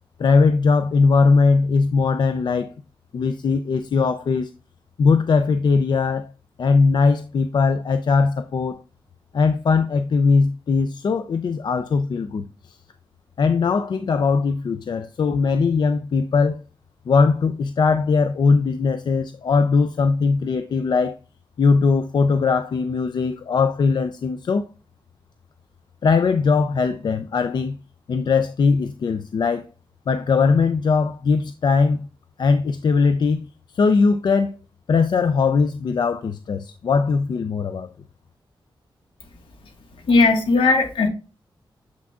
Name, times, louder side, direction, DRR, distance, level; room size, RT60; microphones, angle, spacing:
voice 1, 0.2-2.7 3.1-4.5 5.0-6.3 6.6-8.8 9.3-12.8 13.4-16.6 17.1-21.2 21.6-24.7 26.0-27.8 28.1-29.7 30.1-32.1 32.4-33.5 33.7-34.6 34.9-37.9, left 4 dB, 55° left, 0.4 m, -20 dB
voice 2, 40.0-41.1, left 3 dB, 75° left, 1.6 m, -17 dB
7.3 x 6.0 x 2.4 m
wide cardioid pair, 145°, 9 cm